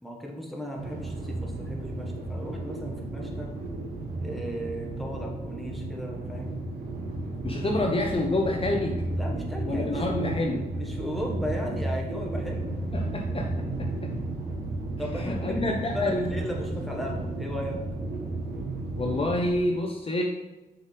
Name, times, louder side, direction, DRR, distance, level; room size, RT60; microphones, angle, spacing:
voice 1, 0.0-3.5 4.2-6.6 7.6-7.9 9.1-10.3 10.7-12.8 15.0-17.8, equal, ahead, -1 dB, 1.5 m, -36 dB
sound 1, 0.8-19.5, right 2 dB, 85° right, 1.1 m, -33 dB
voice 2, 7.4-9.0 9.7-10.7 12.9-14.1 15.2-16.3 19.0-20.2, left 1 dB, 35° left, 1 dB, 0.8 m, -28 dB
7.1 x 5.0 x 3.4 m, 1.1 s
cardioid pair, 75°, 16 cm